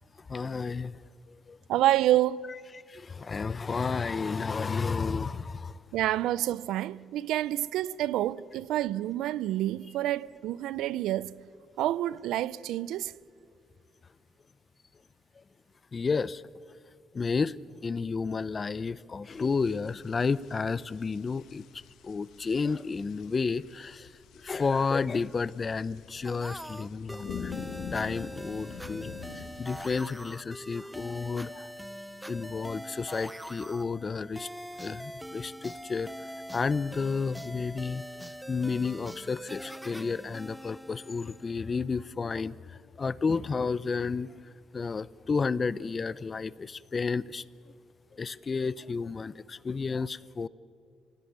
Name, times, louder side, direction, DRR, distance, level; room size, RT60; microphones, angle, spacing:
voice 1, 0.3-1.0 1.5-1.6 2.9-5.8 15.9-16.4 17.1-17.6 17.8-21.6 22.0-24.1 24.4-27.5 27.9-31.7 32.3-34.5 34.8-36.1 36.5-38.0 38.5-44.4 44.7-47.4 48.2-50.5, left 4 dB, 35° left, 0.6 m, -31 dB
voice 2, 1.7-2.5 5.9-11.4 11.8-13.1, right 14 dB, 90° right, 0.5 m, -28 dB
sound 1, 19.3-30.0, left 7 dB, 80° left, 1.4 m, -45 dB
sound 2, 26.2-41.7, equal, 5° right, 0.8 m, -43 dB
27.0 x 17.5 x 9.5 m
cardioid pair, 90°, 0 cm